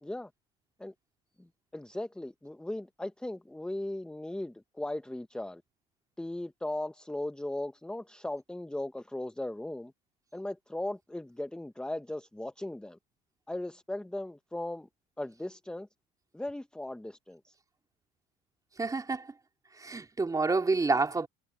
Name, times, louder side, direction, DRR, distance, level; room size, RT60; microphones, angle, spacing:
voice 1, 1.7-5.6 6.2-9.9 10.3-13.0 13.5-14.9 15.2-15.9 16.3-17.5, left 1 dB, 5° left, 1.0 m, -37 dB
voice 2, 18.8-19.3 19.8-21.3, right 3 dB, 20° right, 3.2 m, -28 dB
supercardioid pair, 85°, 18 cm